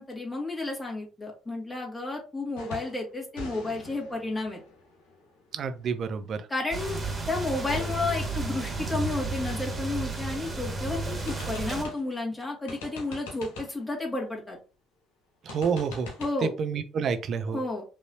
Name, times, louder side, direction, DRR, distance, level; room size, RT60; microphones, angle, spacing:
voice 1, 0.0-4.6 6.5-7.0 7.3-14.6 16.2-16.5 17.5-17.8, left 2 dB, 15° left, -2 dB, 2.3 m, -32 dB
sound 1, 2.6-3.0 3.4-6.0 7.7-10.4 10.7-10.8 11.3-12.2 12.7-13.9 15.5-16.3, left 2 dB, 70° left, 1.4 m, -43 dB
voice 2, 5.5-6.4 15.5-16.1 16.6-17.6, right 6 dB, 50° right, 9 dB, 0.7 m, -29 dB
sound 2, 6.7-11.8, right 3 dB, 25° right, 1.9 m, -32 dB
5.3 x 3.2 x 2.9 m, 0.35 s
hypercardioid pair, 50°, 0 cm